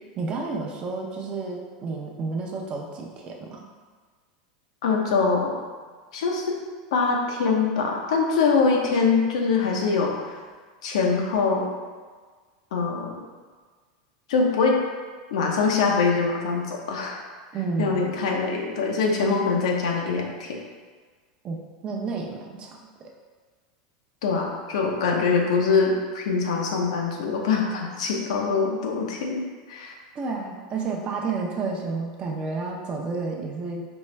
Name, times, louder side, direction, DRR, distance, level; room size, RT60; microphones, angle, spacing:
voice 1, 0.2-3.7 17.5-18.1 21.4-23.1 30.1-33.8, right 4 dB, 30° right, 1 dB, 0.6 m, -31 dB
voice 2, 4.8-5.5 6.1-6.6 6.9-10.4 10.8-11.7 12.7-13.1 14.3-14.8 15.3-17.2 17.8-20.6 24.2-29.9, left 4 dB, 85° left, 0 dB, 0.8 m, -23 dB
4.4 x 3.2 x 3.3 m, 1.5 s
supercardioid pair, 135°, 3 cm